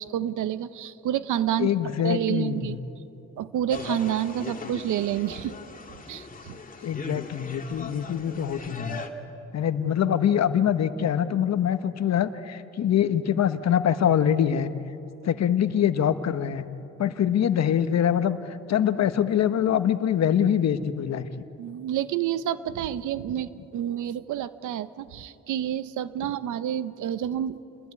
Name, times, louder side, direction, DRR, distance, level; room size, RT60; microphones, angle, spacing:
voice 1, 0.0-1.7 2.0-2.8 3.4-5.6 6.1-6.6 21.6-27.6, right 11 dB, 80° right, 14 dB, 1.0 m, -29 dB
voice 2, 1.6-2.8 6.8-9.0 9.5-14.7 15.2-16.6 17.0-21.2, left 9 dB, 60° left, 10 dB, 1.3 m, -24 dB
sound 1, 3.7-9.1, left 4 dB, 25° left, 2.4 m, -39 dB
29.0 x 20.5 x 9.8 m, 2.9 s
cardioid pair, 90°, 30 cm